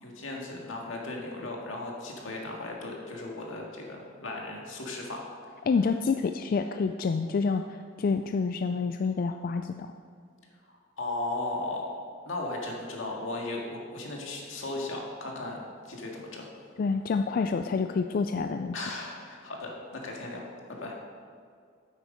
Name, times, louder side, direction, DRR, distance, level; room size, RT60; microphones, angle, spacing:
voice 1, 0.0-5.3 10.7-11.9 12.2-15.6 15.8-16.5 18.7-20.5 20.8-20.9, left 2 dB, 80° left, -1 dB, 1.9 m, -36 dB
voice 2, 5.7-9.9 16.8-18.8, left 4 dB, 45° left, 7 dB, 0.3 m, -28 dB
9.3 x 8.2 x 5.2 m, 2.2 s
head